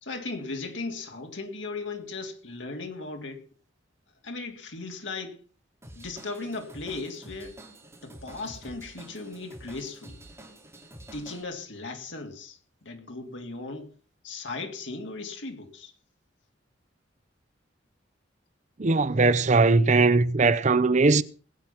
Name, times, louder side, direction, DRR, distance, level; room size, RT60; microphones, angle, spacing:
voice 1, 0.0-3.4 4.2-5.4 5.9-7.6 8.0-10.2 11.1-13.9 14.2-15.9, left 3 dB, 75° left, 2.9 m, -37 dB
Drum kit / Drum, 5.8-11.4, right 1 dB, 15° right, 3.5 m, -48 dB
voice 2, 18.8-21.2, right 3 dB, 40° right, 0.6 m, -20 dB
20.0 x 9.1 x 5.8 m
head